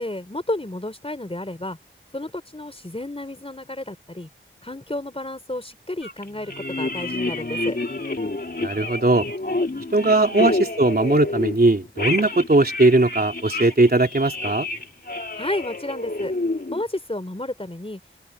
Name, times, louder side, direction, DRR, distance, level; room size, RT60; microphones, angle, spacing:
voice 1, 0.0-1.8 2.1-4.3 4.6-7.8 10.4-10.5 15.4-16.3 16.7-18.0, left 1 dB, 25° left, 4.3 m, -31 dB
sound 1, 6.0-11.6 11.8-16.8, left 2 dB, 50° left, 2.7 m, -29 dB
voice 2, 8.6-9.3 9.9-14.7, right 2 dB, 45° right, 3.3 m, -19 dB
open air
wide cardioid pair, 55°, 21 cm